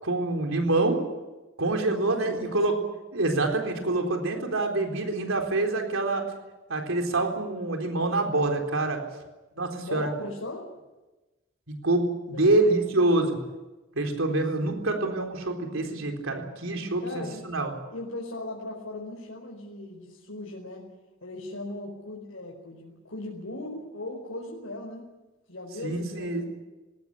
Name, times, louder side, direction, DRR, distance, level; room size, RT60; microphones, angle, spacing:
voice 1, 0.0-1.0 1.6-2.7 3.1-6.2 6.7-9.0 9.6-10.1 11.7-13.4 13.9-17.7 25.8-26.4, right 2 dB, 80° right, 3 dB, 4.0 m, -26 dB
voice 2, 1.7-2.5 9.8-10.7 12.3-12.7 13.0-13.3 14.1-14.9 17.0-17.4 17.9-20.9 21.2-25.1 25.5-26.4, left 2 dB, 80° left, -2 dB, 4.7 m, -39 dB
21.0 x 18.0 x 9.9 m, 1.1 s
head